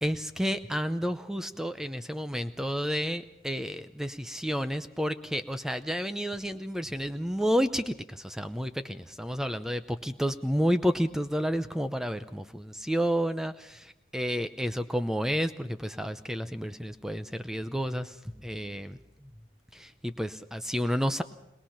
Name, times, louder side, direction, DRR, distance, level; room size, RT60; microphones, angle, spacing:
voice 1, 0.0-18.9 19.7-21.2, equal, ahead, 10 dB, 0.6 m, -30 dB
21.5 x 21.0 x 5.8 m, 0.89 s
head